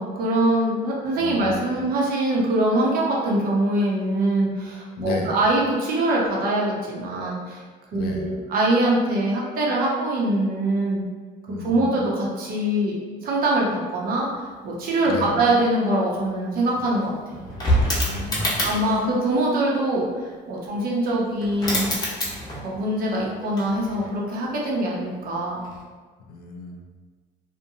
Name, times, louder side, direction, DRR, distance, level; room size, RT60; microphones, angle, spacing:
voice 1, 0.0-7.6 7.9-11.0 11.6-13.0 13.2-17.5 18.6-22.0 22.6-25.7, right 1 dB, 60° right, -3 dB, 0.7 m, -23 dB
voice 2, 1.2-1.7 5.0-5.3 7.9-8.3 11.5-11.9 15.0-15.4 18.1-19.0 26.3-26.8, left 4 dB, 70° left, 1 dB, 0.5 m, -34 dB
sound 1, 16.2-16.3 16.5-19.0 21.1-21.2 21.4-22.8 23.1-24.2 25.6-25.8, equal, 25° left, 0.7 m, -26 dB
2.6 x 2.2 x 2.7 m, 1.4 s
cardioid pair, 110°, 17 cm